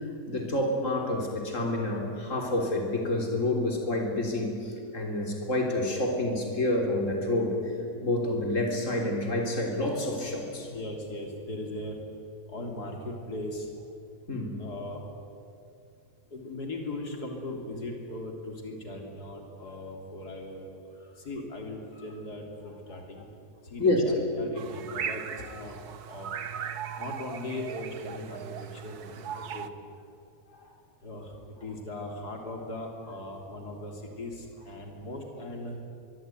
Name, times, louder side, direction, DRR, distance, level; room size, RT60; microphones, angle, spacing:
voice 1, 0.3-7.6 8.0-10.7 14.3-14.6 23.8-24.0, left 1 dB, 50° left, 1 dB, 4.0 m, -28 dB
voice 2, 10.6-12.0 12.5-13.7 14.6-15.0 16.3-20.7 21.3-23.3 23.6-26.3 27.0-29.7 31.0-31.3 31.6-35.8, left 1 dB, 90° left, 1 dB, 3.9 m, -39 dB
sound 1, 24.6-29.7, right 8 dB, 80° right, 1.6 m, -38 dB
24.0 x 23.0 x 9.2 m, 2.5 s
omnidirectional pair, 1.6 m